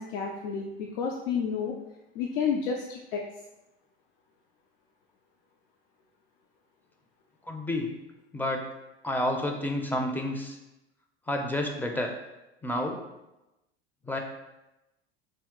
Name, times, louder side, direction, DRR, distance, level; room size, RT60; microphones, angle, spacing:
voice 1, 0.0-1.7 2.1-3.2, left 6 dB, 65° left, 0 dB, 0.5 m, -30 dB
voice 2, 7.5-7.9 8.3-8.6 9.0-10.6 11.3-12.1 12.6-13.0 14.1-14.2, left 1 dB, 5° left, 2 dB, 0.4 m, -29 dB
3.7 x 2.3 x 3.6 m, 0.97 s
hypercardioid pair, 80°, 31 cm